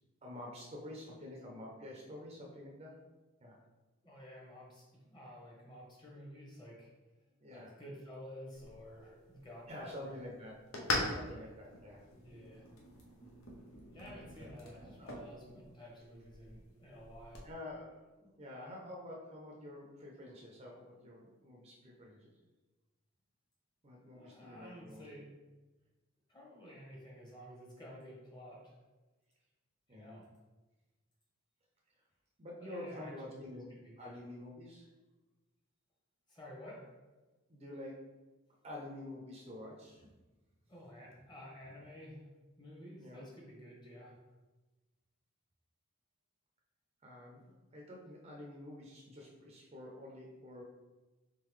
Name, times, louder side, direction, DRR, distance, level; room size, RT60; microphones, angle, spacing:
voice 1, 0.2-3.0 3.4-3.6 7.4-7.7 9.7-10.5 10.9-12.0 14.4-15.1 17.4-22.3 23.8-25.0 29.9-30.2 32.4-34.9 37.5-38.0 38.6-40.1 43.0-43.3 47.0-50.6, left 1 dB, 30° right, -1 dB, 0.5 m, -48 dB
voice 2, 4.0-6.9 7.5-10.1 12.2-12.7 13.9-17.5 24.1-25.3 26.3-28.8 29.9-30.3 32.6-34.1 36.3-36.8 40.7-42.3 42.6-44.2, equal, 20° left, -3 dB, 1.0 m, -52 dB
sound 1, 8.5-17.5, left 1 dB, 85° left, 0.8 m, -43 dB
3.8 x 3.6 x 3.1 m, 1.2 s
head